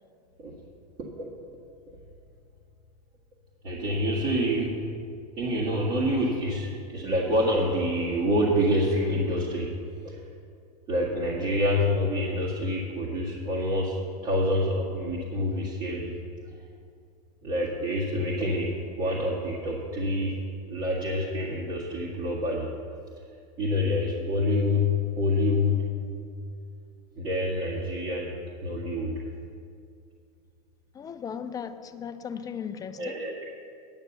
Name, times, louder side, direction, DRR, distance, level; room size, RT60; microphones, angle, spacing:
voice 1, 3.6-4.8 5.4-9.7 10.0-10.2 10.9-16.1 16.5-16.6 17.4-20.4 20.7-22.7 23.6-25.9 27.1-28.3 28.6-29.1 33.0-33.4, left 1 dB, 35° right, 1.8 m, -27 dB
voice 2, 30.9-33.2, left 7 dB, 20° left, 0.4 m, -37 dB
9.6 x 6.6 x 7.0 m
supercardioid pair, 125°, 20 cm